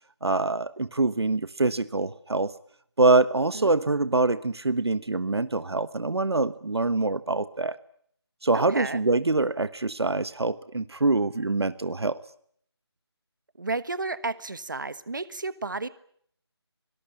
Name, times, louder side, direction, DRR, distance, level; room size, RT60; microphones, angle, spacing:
voice 1, 0.2-2.5 3.0-7.8 8.4-12.2, right 3 dB, 70° right, 14 dB, 1.2 m, -24 dB
voice 2, 8.5-9.0 13.6-15.9, right 3 dB, 45° right, 15 dB, 1.4 m, -32 dB
25.0 x 19.5 x 8.9 m, 0.65 s
figure-of-eight pair, 180°, 14 cm